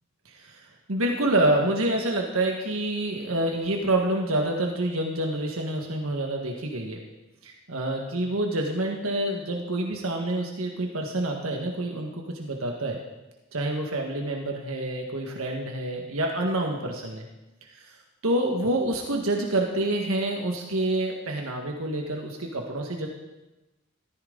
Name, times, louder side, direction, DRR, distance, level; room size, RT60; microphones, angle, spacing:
voice 1, 0.3-7.0 7.4-13.0 13.5-17.3 17.7-18.0 18.2-23.1, right 1 dB, 85° right, 1 dB, 1.6 m, -27 dB
14.5 x 14.0 x 4.0 m, 1.0 s
head